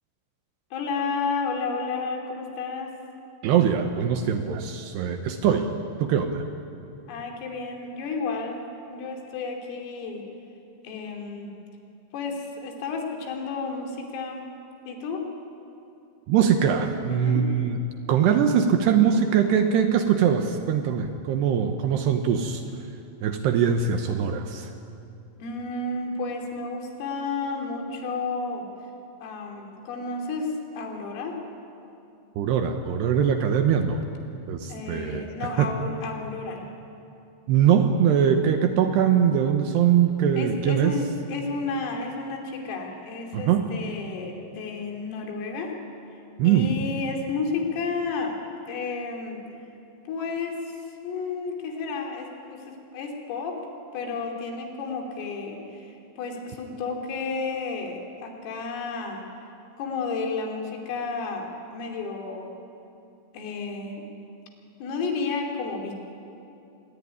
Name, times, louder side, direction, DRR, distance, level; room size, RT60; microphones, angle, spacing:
voice 1, 0.7-2.9 7.1-8.6 8.9-10.2 10.8-11.5 12.1-14.5 14.9-15.3 17.1-17.5 25.4-28.7 29.2-31.4 34.7-36.7 40.4-45.7 46.4-48.4 48.7-49.5 50.1-53.6 53.9-59.2 59.8-62.5 63.3-64.1 64.8-66.0, left 4 dB, 80° left, 2 dB, 5.6 m, -32 dB
voice 2, 3.4-5.7 6.0-6.4 16.3-17.8 18.1-22.6 23.2-24.7 32.4-34.0 34.5-35.3 35.6-35.7 37.5-40.9 43.3-43.7 46.4-46.7, right 8 dB, 70° right, 6 dB, 2.7 m, -22 dB
25.5 x 20.5 x 9.7 m, 2.7 s
omnidirectional pair, 5.8 m